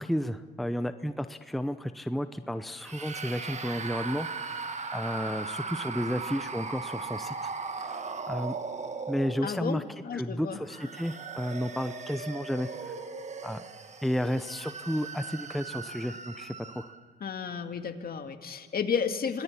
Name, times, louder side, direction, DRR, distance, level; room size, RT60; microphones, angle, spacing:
voice 1, 0.0-7.5 7.8-8.0 8.3-8.5 9.1-9.8 10.1-12.9 13.4-13.6 14.0-16.9, equal, ahead, 9 dB, 0.8 m, -32 dB
sound 1, 2.8-9.8 10.5-17.0, right 4 dB, 35° right, 1.6 m, -38 dB
voice 2, 9.4-10.6 17.2-19.4, left 6 dB, 50° left, 6 dB, 2.1 m, -32 dB
26.5 x 18.5 x 8.5 m, 1.5 s
cardioid pair, 90°, 20 cm